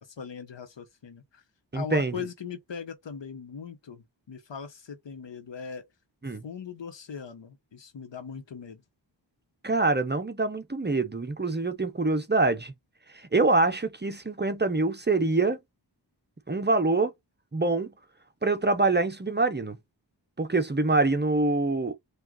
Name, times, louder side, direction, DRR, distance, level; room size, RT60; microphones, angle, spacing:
voice 1, 0.0-1.4 1.7-5.9 6.3-8.8, left 7 dB, 75° left, 1.0 m, -40 dB
voice 2, 1.7-2.1 6.2-6.4 9.6-12.7 13.3-15.6 16.5-17.1 17.5-17.9 18.4-19.8 20.4-21.9, right 3 dB, 25° right, 0.6 m, -25 dB
4.9 x 2.4 x 3.8 m
wide cardioid pair, 85°, 44 cm